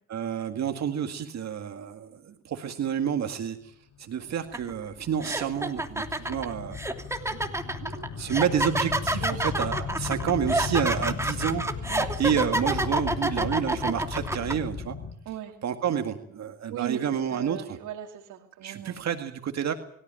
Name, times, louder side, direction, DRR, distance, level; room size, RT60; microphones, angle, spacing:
voice 1, 0.1-6.8 7.3-15.0 15.6-17.8 18.6-19.7, right 8 dB, 60° right, 6 dB, 2.0 m, -30 dB
Ambient Rumble, 4.3-15.1, left 5 dB, 65° left, 3.8 m, -36 dB
sound 1, 4.5-4.7 5.2-14.5, right 2 dB, 10° right, 3.0 m, -28 dB
voice 2, 9.2-9.5 11.9-12.1 15.3-15.6 16.7-17.0 17.3-19.0, right 11 dB, 90° right, 1 dB, 2.5 m, -38 dB
24.5 x 14.5 x 9.0 m, 0.68 s
cardioid pair, 90°, 30 cm